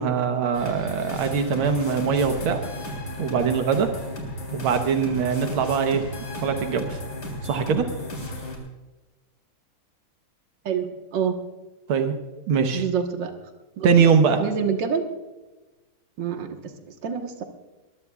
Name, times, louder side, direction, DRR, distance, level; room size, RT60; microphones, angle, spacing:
voice 1, 0.0-2.6 3.2-3.9 4.5-6.0 6.4-7.0 7.4-7.9 11.9-12.2 12.5-12.8 13.8-14.4, right 6 dB, 90° right, 6 dB, 1.9 m, -22 dB
sound 1, 0.5-8.6, left 1 dB, 50° left, 4.3 m, -34 dB
voice 2, 10.7-11.4 12.7-13.3 13.8-14.1 14.4-15.1 16.2-17.4, right 7 dB, 60° right, 4 dB, 1.9 m, -27 dB
22.5 x 20.5 x 2.4 m, 1.1 s
omnidirectional pair, 2.3 m